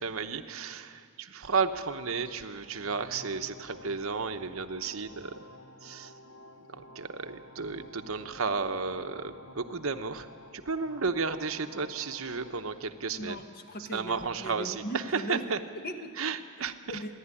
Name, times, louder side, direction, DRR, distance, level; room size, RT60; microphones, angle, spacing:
voice 1, 0.0-5.3 5.8-6.1 6.7-10.3 10.5-13.4 13.9-14.8 15.1-15.6 16.2-17.0, right 4 dB, 70° right, 8 dB, 1.0 m, -33 dB
sound 1, 2.5-12.5, left 1 dB, 70° left, 1.0 m, -51 dB
voice 2, 13.2-15.5 15.7-16.2 16.6-17.1, equal, 45° left, 5 dB, 1.5 m, -39 dB
29.5 x 11.5 x 9.9 m, 2.2 s
head